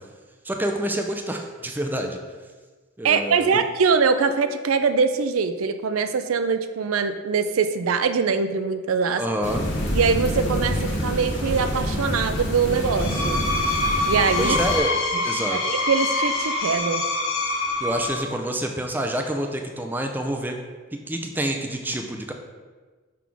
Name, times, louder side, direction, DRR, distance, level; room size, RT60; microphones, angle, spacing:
voice 1, 0.4-2.2 3.0-3.5 9.2-9.6 14.4-14.9 15.2-15.6 17.8-20.6 20.9-22.3, right 1 dB, 10° right, 3 dB, 0.5 m, -27 dB
voice 2, 3.0-9.2 9.9-13.5 14.1-14.6 15.5-17.0, right 5 dB, 85° right, 9 dB, 0.4 m, -23 dB
sound 1, 9.4-14.8, equal, 55° left, 1.2 m, -27 dB
Screech, 12.8-18.3, left 2 dB, 80° left, 1.3 m, -25 dB
6.0 x 3.6 x 6.0 m, 1.4 s
head